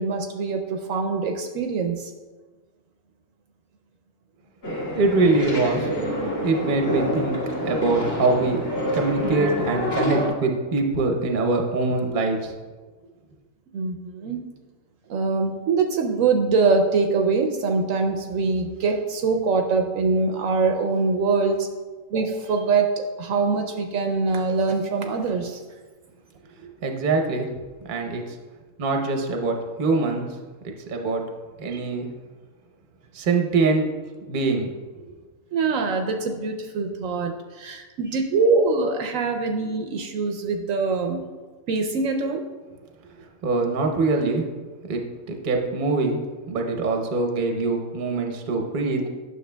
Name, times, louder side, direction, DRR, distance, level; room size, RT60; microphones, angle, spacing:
voice 1, 0.0-2.1 13.7-14.4 15.1-21.7 22.1-25.6 35.5-41.2 41.7-42.4, right 4 dB, 75° right, 4 dB, 0.9 m, -23 dB
sound 1, 4.6-10.3, equal, 70° left, 2.0 m, -27 dB
voice 2, 4.9-5.9 6.4-8.6 8.9-12.5 26.6-27.5 27.8-28.4 28.8-30.4 30.6-31.2 31.6-32.1 33.1-34.0 34.3-34.7 43.4-44.5 44.9-45.0 45.3-46.2 46.5-49.0, right 3 dB, 45° right, 3 dB, 0.8 m, -23 dB
9.3 x 6.5 x 2.2 m, 1.3 s
omnidirectional pair, 1.5 m